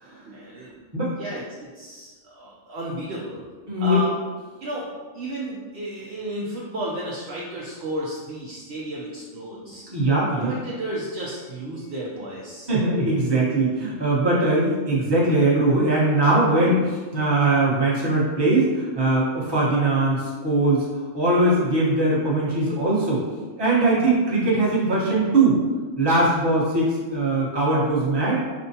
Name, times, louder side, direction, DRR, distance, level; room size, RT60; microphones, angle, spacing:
voice 1, 0.2-0.8 1.2-3.5 3.8-4.1 4.6-4.9 5.1-10.0 10.3-12.7, right 1 dB, 65° right, -5 dB, 0.7 m, -33 dB
voice 2, 3.7-4.0 9.9-10.6 12.7-23.2 23.6-25.6 26.0-28.4, right 2 dB, 20° right, -7 dB, 0.9 m, -21 dB
5.2 x 2.1 x 2.7 m, 1.4 s
omnidirectional pair, 1.3 m